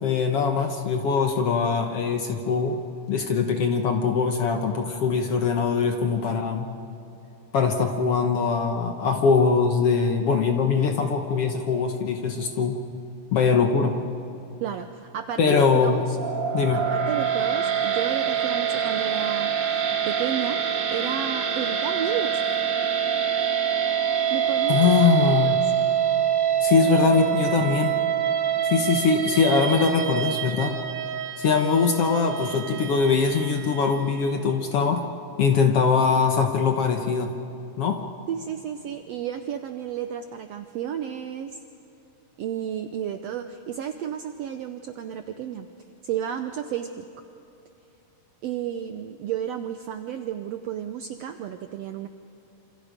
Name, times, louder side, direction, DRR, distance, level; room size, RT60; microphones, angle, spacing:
voice 1, 0.0-2.8 3.1-6.7 7.5-12.8 13.3-14.0 15.4-16.0 16.5-16.9 24.7-25.6 26.6-28.0 28.6-30.7 31.4-35.0 35.4-37.3 37.8-38.0, left 5 dB, 60° left, 4 dB, 1.7 m, -22 dB
voice 2, 14.6-16.2 16.7-20.6 20.9-22.4 24.3-25.6 38.3-41.6 42.4-45.7 46.0-47.1 48.4-52.1, right 9 dB, 80° right, 8 dB, 1.5 m, -32 dB
sound 1, 16.1-34.4, right 8 dB, 60° right, 1.2 m, -25 dB
27.5 x 27.0 x 5.2 m, 2.9 s
omnidirectional pair, 3.8 m